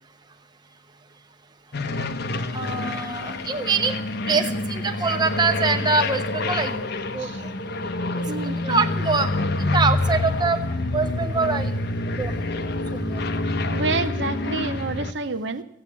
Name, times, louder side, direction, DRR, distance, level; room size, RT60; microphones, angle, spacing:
sound 1, 1.7-15.1, left 2 dB, 55° left, 0.9 m, -27 dB
voice 1, 2.5-4.0 4.3-6.8 7.1-7.5 8.6-9.3 9.6-10.6 10.9-11.7 12.2-12.4 12.9-13.2, right 4 dB, 20° right, 6 dB, 0.9 m, -24 dB
voice 2, 8.3-8.8 13.7-15.6, right 3 dB, 60° right, 8 dB, 0.9 m, -28 dB
15.5 x 8.7 x 8.3 m, 0.80 s
head